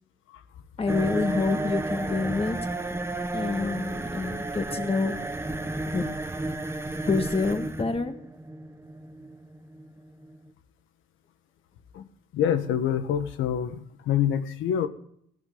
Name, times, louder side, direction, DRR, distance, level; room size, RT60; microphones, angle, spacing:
voice 1, 0.8-2.6 3.3-5.2 5.9-6.0 7.1-8.1, left 4 dB, 30° left, 6 dB, 2.0 m, -27 dB
sound 1, 0.9-10.5, right 2 dB, 10° right, 1.2 m, -33 dB
voice 2, 12.3-14.9, left 9 dB, 85° left, 9 dB, 1.4 m, -26 dB
17.5 x 14.5 x 4.0 m, 0.67 s
cardioid pair, 90°, 20 cm